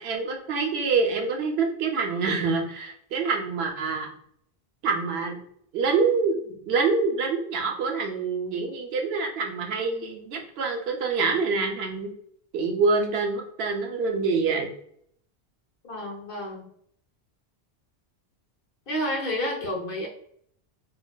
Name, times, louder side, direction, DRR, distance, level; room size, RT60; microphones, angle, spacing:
voice 1, 0.0-4.1 4.8-5.4 5.7-12.1 12.5-14.7, right 4 dB, 75° right, 2 dB, 0.8 m, -26 dB
voice 2, 15.8-16.7 18.9-20.1, left 1 dB, 60° left, -1 dB, 0.9 m, -30 dB
3.9 x 2.1 x 2.2 m, 0.66 s
omnidirectional pair, 1.1 m